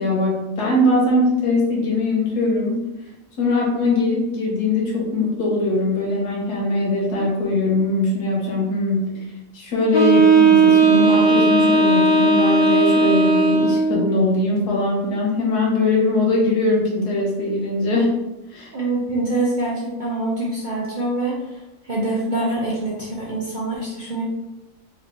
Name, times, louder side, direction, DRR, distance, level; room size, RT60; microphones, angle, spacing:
voice 1, 0.0-2.8 3.4-9.2 9.5-18.1 18.5-18.7, left 2 dB, 85° left, -3 dB, 1.6 m, -21 dB
Wind instrument woodwind instrument, 9.9-14.0, right 3 dB, 45° left, 0.6 m, -15 dB
voice 2, 18.7-21.5 21.8-24.2, right 2 dB, 50° right, -6 dB, 0.6 m, -25 dB
4.3 x 3.1 x 2.7 m, 0.96 s
omnidirectional pair, 1.6 m